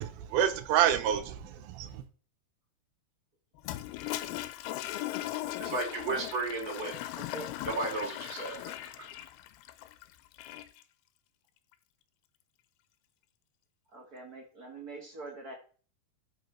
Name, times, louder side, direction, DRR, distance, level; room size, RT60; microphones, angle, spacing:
voice 1, 0.0-2.0, right 10 dB, 75° right, 2.6 m, -28 dB
Toilet flush, 3.6-10.8, left 14 dB, 85° left, 2.6 m, -38 dB
voice 2, 5.6-7.0 7.7-8.7, right 3 dB, 25° right, 2.6 m, -34 dB
voice 3, 7.2-7.5 13.9-15.5, right 3 dB, 60° right, 0.9 m, -44 dB
13.0 x 6.0 x 4.5 m
omnidirectional pair, 4.6 m